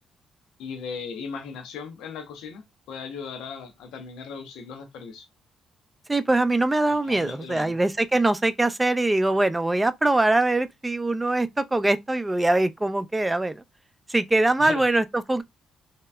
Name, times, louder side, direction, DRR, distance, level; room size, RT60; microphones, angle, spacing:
voice 1, 0.6-5.3 6.9-7.7 14.6-14.8, left 5 dB, 90° left, 0.6 m, -37 dB
voice 2, 6.1-13.6 14.1-15.4, right 2 dB, 15° right, 0.4 m, -23 dB
3.1 x 2.8 x 2.2 m
cardioid pair, 90°, 0 cm